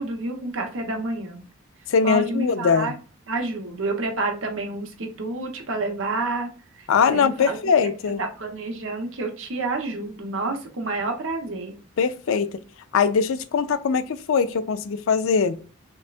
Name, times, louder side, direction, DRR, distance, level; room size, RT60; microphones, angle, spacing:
voice 1, 0.0-1.4 2.0-2.9 3.3-6.5 6.7-6.9 7.1-7.6 7.8-7.9 8.2-11.8, right 2 dB, 65° right, 0.9 m, -29 dB
voice 2, 1.9-2.9 6.9-8.2 12.0-12.5 12.9-15.6, left 5 dB, 70° left, 0.4 m, -21 dB
5.3 x 2.2 x 2.4 m
head